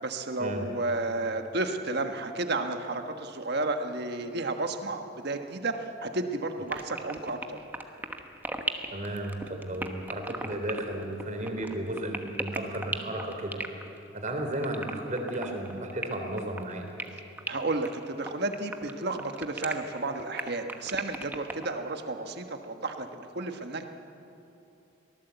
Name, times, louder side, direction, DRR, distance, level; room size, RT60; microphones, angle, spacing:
voice 1, 0.0-7.6 17.5-23.8, right 2 dB, 55° right, 6 dB, 1.5 m, -32 dB
sound 1, 6.7-21.7, right 2 dB, 10° right, 1.1 m, -36 dB
voice 2, 8.9-13.6 14.1-16.9, right 1 dB, 40° right, 3 dB, 3.3 m, -34 dB
24.0 x 18.0 x 8.2 m, 2.8 s
head